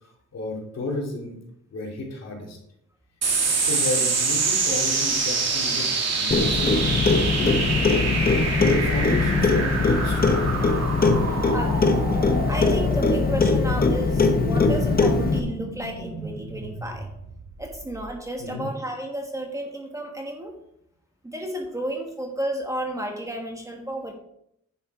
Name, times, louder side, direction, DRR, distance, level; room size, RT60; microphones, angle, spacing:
voice 1, 0.0-1.4 1.7-2.6 3.6-7.8 8.5-10.5 18.4-18.7, left 2 dB, 55° left, -1 dB, 3.2 m, -33 dB
sound 1, 3.2-18.0, right 4 dB, 55° right, 2.6 m, -27 dB
Clock, 6.3-15.4, left 4 dB, 30° left, 1.1 m, -21 dB
voice 2, 11.3-12.0 12.5-17.1 17.6-20.5 21.2-24.1, right 1 dB, 10° right, 2 dB, 1.4 m, -32 dB
10.5 x 7.5 x 4.9 m, 0.74 s
wide cardioid pair, 170°, 31 cm